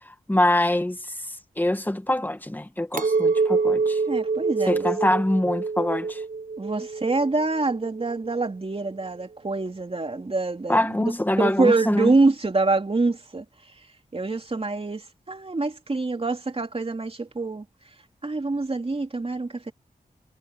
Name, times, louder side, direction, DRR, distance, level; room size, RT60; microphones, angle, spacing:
voice 1, 0.1-1.1 1.6-4.0 4.7-6.2 10.7-12.1, left 1 dB, 10° left, 1.8 m, -24 dB
Chink clink, 2.9-8.3, right 4 dB, 60° right, 6.6 m, -26 dB
voice 2, 4.1-4.9 6.6-13.7 14.1-17.6 18.2-19.7, right 3 dB, 35° right, 3.2 m, -25 dB
wide cardioid pair, 105°, 16 cm